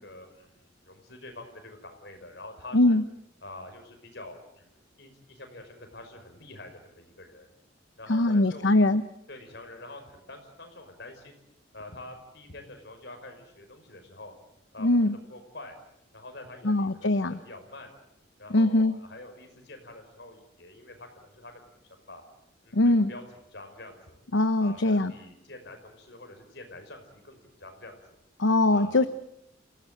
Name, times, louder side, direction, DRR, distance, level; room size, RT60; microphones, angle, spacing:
voice 1, 0.0-3.0 3.4-7.5 8.0-8.7 9.3-11.4 11.7-14.3 14.7-15.0 15.2-15.8 16.1-17.9 18.4-22.2 22.6-23.2 23.5-24.2 24.6-28.2 28.7-29.1, left 2 dB, 60° left, 5 dB, 5.6 m, -46 dB
voice 2, 8.1-9.0 14.8-15.2 16.6-17.4 18.5-18.9 22.7-23.1 24.3-25.1 28.4-29.1, left 2 dB, 75° left, 11 dB, 0.9 m, -22 dB
28.0 x 17.0 x 9.1 m, 0.78 s
head